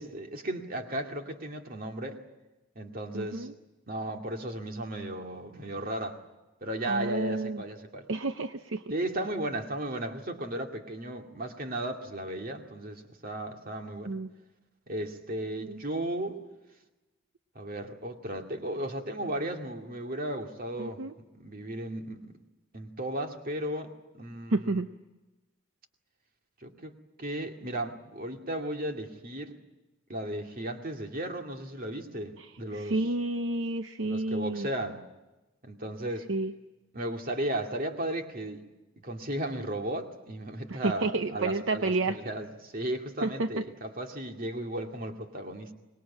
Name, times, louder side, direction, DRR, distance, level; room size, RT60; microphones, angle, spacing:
voice 1, 0.0-2.2 2.8-3.5 3.9-6.2 6.6-8.1 8.9-14.1 14.9-16.4 17.5-21.0 21.3-22.3 22.7-24.8 26.6-26.9 27.2-29.6 30.1-33.0 34.0-35.0 35.6-36.3 36.9-38.6 39.0-45.7, right 1 dB, 40° right, 4 dB, 2.3 m, -35 dB
voice 2, 3.1-3.5 6.8-7.6 8.1-8.8 14.0-14.3 15.6-15.8 20.8-21.1 24.5-24.9 32.4-34.7 36.3-36.5 40.7-42.2 43.2-43.6, right 2 dB, 65° right, 9 dB, 0.8 m, -30 dB
25.0 x 21.0 x 8.5 m, 1.1 s
head